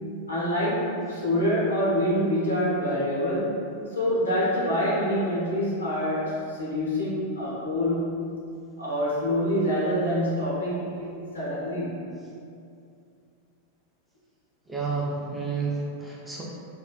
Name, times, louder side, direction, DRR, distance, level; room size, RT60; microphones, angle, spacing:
voice 1, 0.3-3.6 3.9-8.1 8.8-12.0, equal, 80° left, -8 dB, 1.0 m, -26 dB
voice 2, 14.7-16.4, right 4 dB, 5° right, -5 dB, 0.5 m, -30 dB
3.3 x 2.4 x 2.4 m, 2.4 s
figure-of-eight pair, 90°, 0 cm